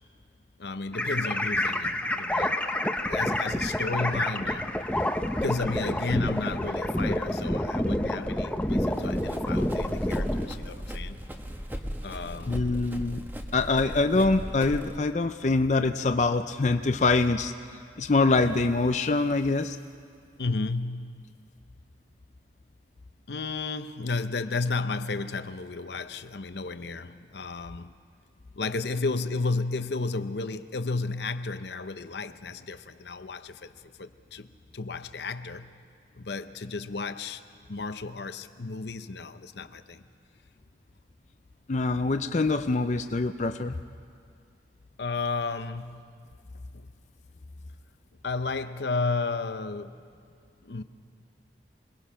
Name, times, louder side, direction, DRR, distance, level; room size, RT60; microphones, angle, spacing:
voice 1, 0.6-2.6 3.1-4.8 5.4-11.2 12.0-12.6 20.4-21.3 23.3-27.9 28.5-35.8 36.2-37.4 37.7-40.0 45.0-46.2 46.5-46.9 48.2-50.0 50.6-50.8, left 3 dB, 75° left, 0.7 m, -33 dB
sound 1, 0.9-10.5, left 1 dB, 10° left, 0.7 m, -28 dB
Run, 8.9-15.0, equal, 10° right, 1.1 m, -37 dB
voice 2, 12.5-13.2 13.5-17.5 18.0-19.8 41.7-43.8, left 3 dB, 40° left, 0.5 m, -24 dB
26.5 x 20.5 x 5.7 m
head